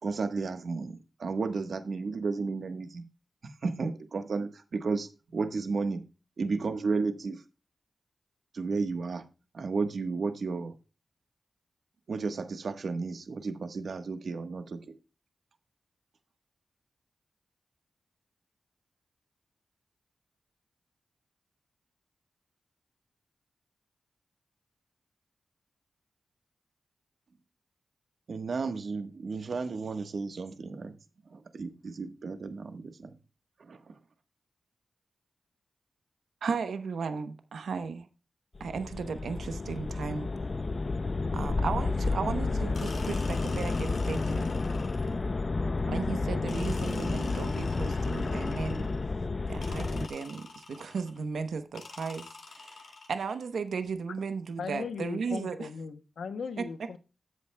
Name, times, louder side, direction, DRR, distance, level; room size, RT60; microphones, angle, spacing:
voice 1, 0.0-3.0 3.4-6.0 6.4-7.4 8.5-9.2 9.5-10.7 12.1-14.9 28.3-30.9 31.3-33.2 33.6-34.0, right 4 dB, 65° right, 1.2 m, -33 dB
voice 2, 36.4-38.1 38.6-40.3 41.3-44.5 45.9-48.9 49.5-55.7 56.6-56.7, right 5 dB, 85° right, 0.9 m, -35 dB
sound 1, 38.6-50.1, left 3 dB, 40° left, 0.5 m, -31 dB
sound 2, 42.7-45.3 46.5-49.1 49.6-51.2 51.7-53.4, left 4 dB, 70° left, 2.3 m, -47 dB
voice 3, 54.6-57.0, left 5 dB, 85° left, 0.8 m, -38 dB
13.0 x 8.5 x 2.2 m
wide cardioid pair, 85°, 0 cm